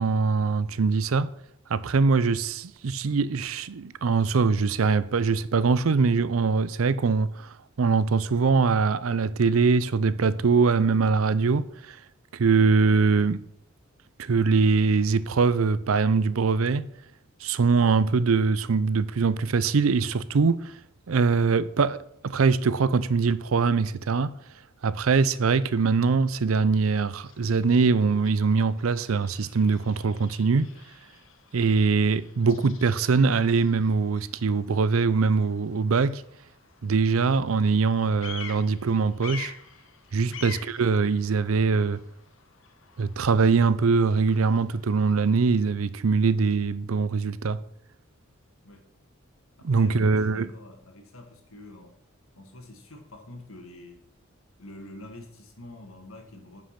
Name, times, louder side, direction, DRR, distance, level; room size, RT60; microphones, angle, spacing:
voice 1, 0.0-1.3 1.7-7.5 7.8-12.0 12.3-13.4 14.2-16.9 17.4-20.7 21.1-22.0 22.2-24.4 24.8-30.7 31.5-36.2 36.8-39.5 40.1-42.0 43.0-47.6 49.6-50.5, right 4 dB, 85° right, 0.5 m, -23 dB
Bird vocalization bird call bird song, 26.7-45.4, left 6 dB, 65° left, 1.4 m, -48 dB
voice 2, 49.6-52.0 52.3-54.1 54.6-56.6, left 1 dB, 90° left, 2.0 m, -46 dB
10.0 x 5.5 x 5.9 m
head